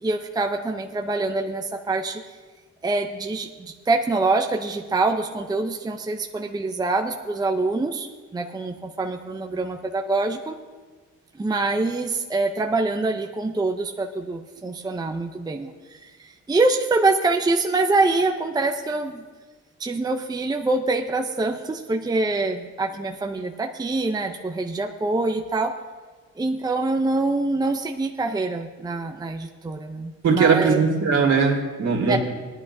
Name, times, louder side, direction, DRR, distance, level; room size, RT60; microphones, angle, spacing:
voice 1, 0.0-2.2 2.8-10.6 11.4-19.2 19.8-25.7 26.4-30.8 32.1-32.2, right 3 dB, 15° right, 3 dB, 0.6 m, -25 dB
voice 2, 30.2-32.2, right 5 dB, 60° right, 0 dB, 2.3 m, -19 dB
17.5 x 10.5 x 2.7 m, 1.4 s
cardioid pair, 90°, 30 cm